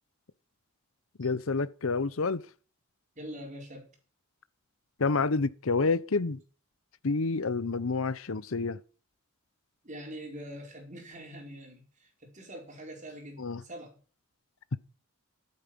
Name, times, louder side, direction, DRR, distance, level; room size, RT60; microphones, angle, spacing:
voice 1, 1.2-2.4 5.0-6.4 7.0-8.8 13.4-13.6, left 4 dB, 65° left, 0.7 m, -28 dB
voice 2, 3.2-3.9 9.8-14.0, equal, 35° right, 4.9 m, -44 dB
14.0 x 8.7 x 6.1 m
head